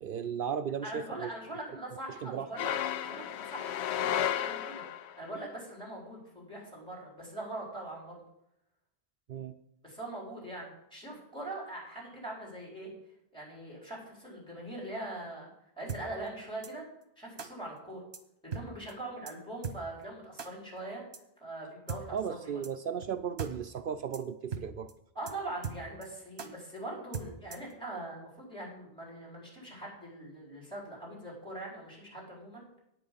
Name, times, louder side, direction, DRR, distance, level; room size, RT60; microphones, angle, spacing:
voice 1, 0.0-1.3 2.1-2.5 9.3-9.6 22.1-24.9, right 7 dB, 60° right, 10 dB, 0.7 m, -35 dB
voice 2, 0.8-2.7 3.0-4.8 5.2-8.2 9.8-12.9 13.3-15.5 15.8-16.8 17.2-18.0 18.4-21.0 21.4-22.6 25.1-32.6, right 1 dB, 5° left, -5 dB, 4.7 m, -42 dB
sound 1, 2.6-5.2, left 10 dB, 80° left, 0.8 m, -33 dB
sound 2, 15.9-16.0 16.6-16.7 17.4-17.5 18.1-18.2 18.5-18.6 18.9-19.0 19.3-19.4 19.6-19.8 20.4-20.5 21.1-21.2 21.9-22.0 22.6-22.7 23.0-23.1 23.4-23.5 23.8-23.9 24.1-24.2 24.5-24.6 24.9-25.0 25.3-25.4 25.6-26.1 26.4-26.5 27.1-27.7, right 6 dB, 80° right, 1.3 m, -38 dB
9.4 x 6.0 x 8.6 m, 0.81 s
omnidirectional pair, 1.1 m